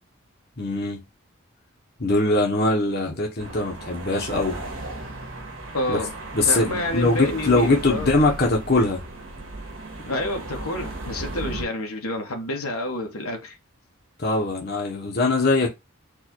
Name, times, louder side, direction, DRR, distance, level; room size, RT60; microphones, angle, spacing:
voice 1, 0.6-1.0 2.0-4.6 5.9-6.0 6.3-9.0 14.2-15.7, left 2 dB, 45° left, 1.0 m, -22 dB
sound 1, 3.4-11.6, right 2 dB, 65° right, 1.6 m, -36 dB
voice 2, 5.7-6.1 6.4-8.1 10.1-13.5, left 1 dB, 90° left, 1.5 m, -29 dB
4.6 x 2.6 x 4.5 m
head